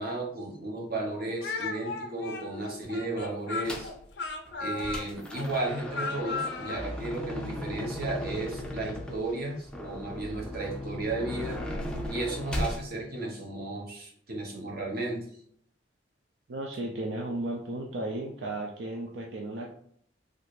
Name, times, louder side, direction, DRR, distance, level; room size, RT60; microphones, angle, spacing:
voice 1, 0.0-3.9 4.6-11.6 12.1-15.2, right 2 dB, 55° right, 0 dB, 0.8 m, -34 dB
Speech, 1.4-6.9, left 4 dB, 75° left, 0.5 m, -36 dB
sound 1, 3.6-4.0 4.5-12.8, left 1 dB, 5° left, 0.4 m, -37 dB
voice 2, 16.5-19.7, right 2 dB, 75° right, 0 dB, 0.4 m, -34 dB
3.2 x 2.5 x 3.1 m, 0.64 s
head